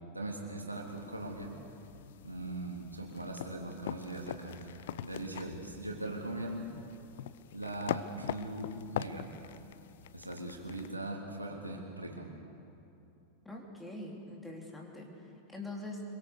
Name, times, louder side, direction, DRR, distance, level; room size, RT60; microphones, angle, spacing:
voice 1, 0.1-1.6 2.2-6.8 7.5-9.3 9.8-12.4, right 1 dB, 85° right, 0 dB, 3.1 m, -40 dB
sound 1, 0.7-10.9, left 11 dB, 55° left, 0.6 m, -43 dB
voice 2, 13.5-16.0, left 2 dB, 5° left, -1 dB, 3.8 m, -44 dB
25.0 x 23.5 x 6.8 m, 2.8 s
figure-of-eight pair, 90°, 0 cm